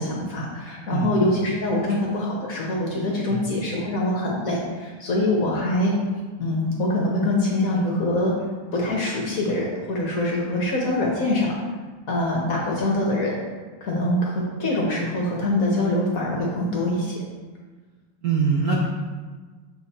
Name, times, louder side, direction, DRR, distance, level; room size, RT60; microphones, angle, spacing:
voice 1, 0.0-5.9 6.4-8.3 8.7-11.5 12.1-13.4 13.8-17.2, left 1 dB, 55° left, -2 dB, 1.1 m, -24 dB
voice 2, 0.9-1.3 3.3-3.4 18.2-18.9, right 4 dB, 70° right, -3 dB, 0.9 m, -23 dB
7.0 x 3.5 x 4.2 m, 1.4 s
omnidirectional pair, 2.3 m